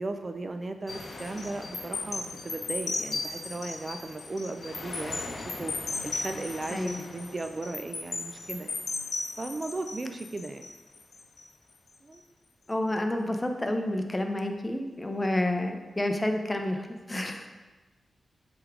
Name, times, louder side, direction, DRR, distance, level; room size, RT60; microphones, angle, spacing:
voice 1, 0.0-5.7 6.0-8.7 9.4-10.7 12.0-12.2, right 2 dB, 40° right, 7 dB, 0.4 m, -36 dB
sound 1, 0.9-11.4 11.9-12.1, left 3 dB, 60° left, 0.7 m, -36 dB
voice 2, 6.7-7.0 12.7-16.8 17.1-17.5, left 1 dB, 20° left, 4 dB, 0.7 m, -29 dB
7.9 x 3.5 x 3.6 m, 1.2 s
cardioid pair, 70°, 0 cm